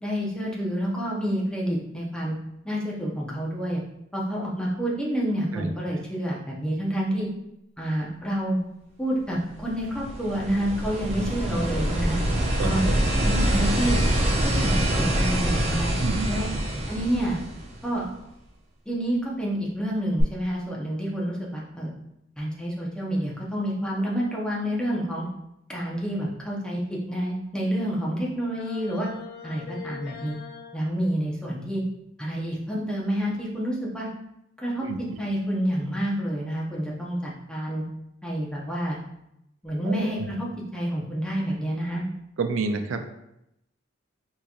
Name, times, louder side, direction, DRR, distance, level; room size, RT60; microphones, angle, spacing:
voice 1, 0.0-2.3 2.6-3.8 4.1-7.3 7.8-8.6 9.0-12.2 12.6-12.9 13.2-14.0 14.4-15.9 16.3-16.5 16.9-17.4 17.8-18.1 18.9-21.9 22.4-25.3 25.7-29.1 29.4-30.3 30.7-31.8 32.2-34.1 34.6-37.8 38.2-39.0 39.6-42.0, equal, 5° left, -5 dB, 0.7 m, -28 dB
sound 1, 9.6-18.1 20.2-20.3, right 1 dB, 35° right, 0.5 m, -25 dB
voice 2, 12.6-13.0 16.0-16.6 34.8-35.0 39.9-40.3 42.4-43.1, right 4 dB, 85° right, 7 dB, 0.4 m, -30 dB
sound 2, 28.4-30.8, left 6 dB, 50° left, 0.3 m, -41 dB
3.7 x 2.9 x 2.4 m, 0.82 s
head